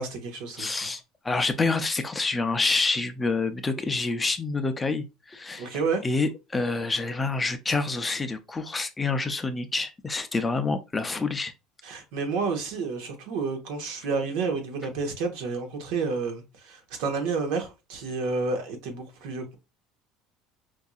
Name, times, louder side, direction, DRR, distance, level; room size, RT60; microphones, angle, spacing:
voice 1, 0.0-0.9 5.6-6.0 11.8-19.5, right 4 dB, 75° right, 1.1 m, -30 dB
voice 2, 0.6-11.5, left 3 dB, 15° left, 0.4 m, -27 dB
4.6 x 2.6 x 2.3 m
cardioid pair, 145°, 0 cm